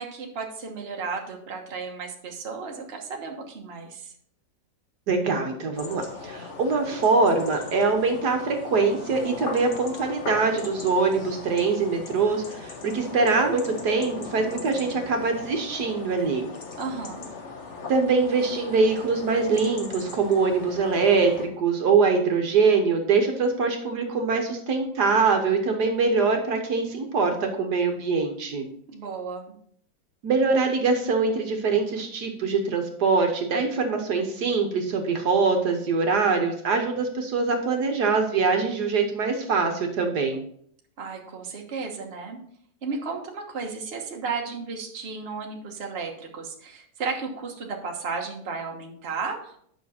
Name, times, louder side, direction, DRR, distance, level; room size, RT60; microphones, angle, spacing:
voice 1, 0.0-4.1 16.8-17.3 28.9-29.6 41.0-42.4 42.8-49.6, right 4 dB, 40° right, 1 dB, 1.3 m, -34 dB
voice 2, 5.1-16.5 17.9-28.7 30.2-40.4, right 4 dB, 65° right, 4 dB, 1.6 m, -23 dB
sound 1, 5.7-21.5, left 4 dB, 45° left, 1.3 m, -39 dB
9.1 x 5.9 x 4.2 m, 0.65 s
omnidirectional pair, 1.9 m